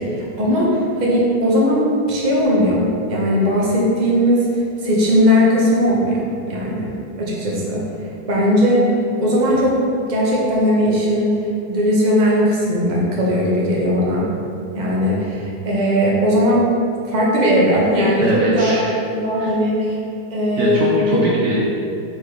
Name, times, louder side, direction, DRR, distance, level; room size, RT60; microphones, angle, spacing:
voice 1, 0.0-4.5 4.8-7.8 8.3-8.9 9.2-9.8 10.1-11.3 11.7-14.3 14.7-16.7 17.1-18.8 19.1-20.0 20.3-21.2, equal, 30° right, -5 dB, 0.8 m, -18 dB
voice 2, 18.2-18.9 19.4-19.5 20.6-21.6, right 1 dB, 80° right, -5 dB, 0.7 m, -22 dB
6.6 x 4.0 x 4.7 m, 2.6 s
omnidirectional pair, 2.4 m